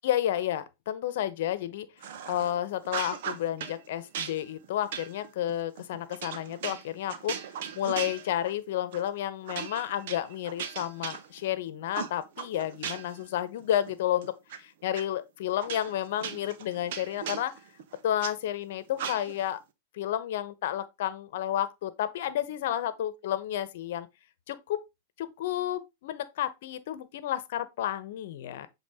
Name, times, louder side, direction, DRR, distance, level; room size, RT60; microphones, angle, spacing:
voice 1, 0.0-1.9 2.3-7.4 7.8-17.5 18.0-19.6 19.9-24.1 24.5-24.8 25.2-28.7, left 11 dB, 65° left, 0.9 m, -31 dB
sound 1, 2.0-2.5 2.8-3.8 4.1-8.6 8.9-9.1 9.5-11.6 11.9-13.2 13.6-14.6 14.9-15.0 15.6-18.3 19.0-19.5, right 8 dB, 65° right, 1.0 m, -38 dB
7.4 x 3.7 x 3.6 m
hypercardioid pair, 115°, 0 cm